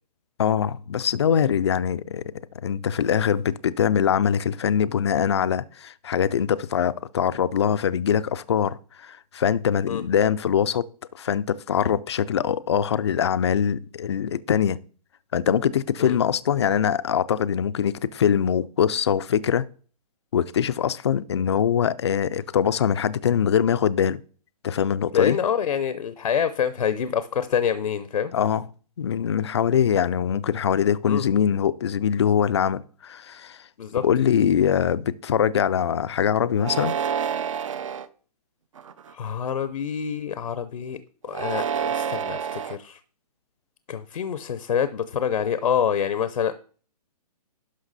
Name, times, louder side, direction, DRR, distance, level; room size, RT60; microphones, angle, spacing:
voice 1, 0.4-2.2 2.6-10.8 11.2-14.8 15.3-19.6 20.3-24.2 24.6-25.4 28.3-28.6 29.0-33.6 33.9-36.9, left 8 dB, 40° left, 0.4 m, -23 dB
voice 2, 25.1-28.3 31.0-31.2 33.8-34.0 39.1-41.0 41.2-43.0 43.9-46.5, left 8 dB, 75° left, 0.7 m, -26 dB
sound 1, 36.6-38.1 38.8-39.3 41.3-42.8, right 7 dB, 50° right, 0.6 m, -28 dB
11.5 x 5.7 x 4.0 m
hypercardioid pair, 170°, 21 cm